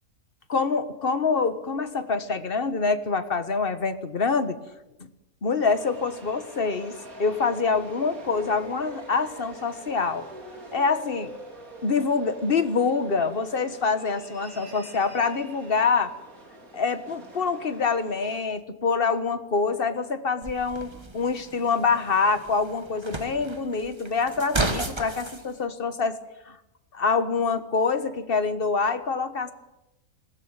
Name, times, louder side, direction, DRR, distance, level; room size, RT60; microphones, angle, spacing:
voice 1, 0.5-4.6 5.4-6.9 7.2-10.3 10.7-11.4 11.8-16.1 16.7-26.2 26.5-26.6 26.9-29.5, left 4 dB, 40° left, 10 dB, 1.5 m, -25 dB
sound 1, 5.6-18.4, right 1 dB, 65° right, 3.9 m, -44 dB
sound 2, 20.4-25.4, right 2 dB, 20° right, 1.4 m, -33 dB
21.0 x 17.0 x 9.0 m, 0.93 s
omnidirectional pair, 1.6 m